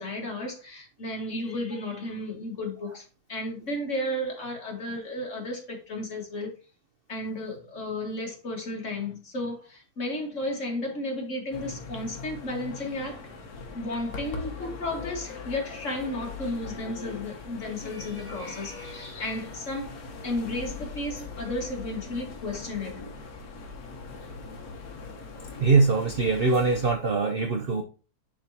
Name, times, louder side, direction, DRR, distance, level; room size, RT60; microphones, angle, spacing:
voice 1, 0.0-6.5 7.1-13.4 13.7-20.0 20.2-23.1, left 1 dB, 50° left, 2.0 m, -33 dB
sound 1, 11.5-26.9, left 4 dB, 65° left, 1.5 m, -41 dB
voice 2, 25.6-27.8, right 4 dB, 55° right, 0.6 m, -22 dB
10.5 x 3.9 x 2.8 m
omnidirectional pair, 1.7 m